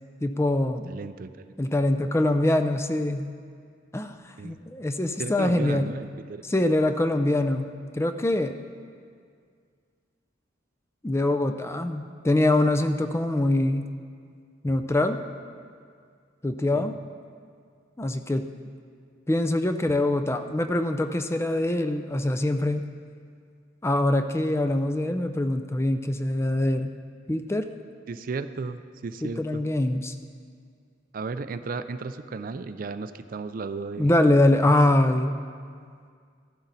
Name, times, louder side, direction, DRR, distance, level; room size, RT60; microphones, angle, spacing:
voice 1, 0.2-0.9 1.6-3.3 3.9-5.9 6.5-8.5 11.0-13.9 14.6-15.2 16.4-17.0 18.0-18.5 19.3-22.8 23.8-26.9 27.3-27.7 29.2-30.1 34.0-35.4, left 1 dB, 15° left, 8 dB, 0.4 m, -24 dB
voice 2, 0.9-1.6 4.4-4.6 5.2-6.5 16.7-16.9 28.1-29.6 31.1-34.1 34.6-34.7, right 4 dB, 45° right, 11 dB, 0.4 m, -34 dB
14.0 x 11.5 x 4.0 m, 2.1 s
head